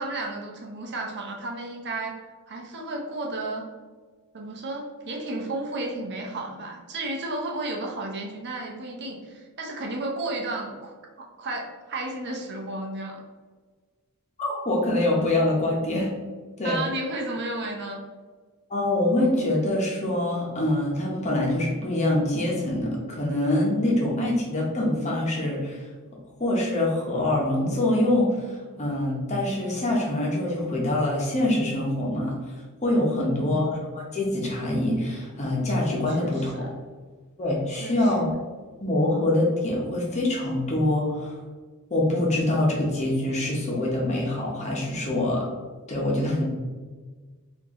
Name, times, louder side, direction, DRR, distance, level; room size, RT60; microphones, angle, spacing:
voice 1, 0.0-2.2 2.5-3.7 4.3-10.9 11.4-13.2 16.6-18.0 33.2-33.6 36.2-36.4 37.8-38.0, right 2 dB, 50° right, 0 dB, 0.7 m, -32 dB
voice 2, 14.4-16.1 16.6-16.8 18.7-25.9 26.4-32.4 32.8-36.7 37.4-38.3 38.8-41.4 41.9-45.5 45.9-46.5, left 1 dB, 30° left, -3 dB, 1.0 m, -25 dB
4.4 x 2.7 x 3.7 m, 1.4 s
head